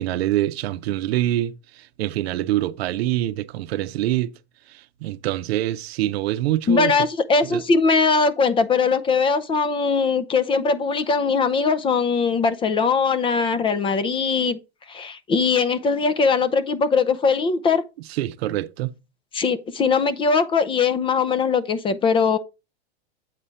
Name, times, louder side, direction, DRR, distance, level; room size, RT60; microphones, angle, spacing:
voice 1, 0.0-4.3 4.7-7.0 7.4-7.6 18.0-18.9, right 14 dB, 70° right, 0.7 m, -25 dB
voice 2, 6.7-14.6 14.9-17.8 19.3-22.4, left 5 dB, 15° left, 0.5 m, -20 dB
8.2 x 4.2 x 5.0 m
supercardioid pair, 140°, 32 cm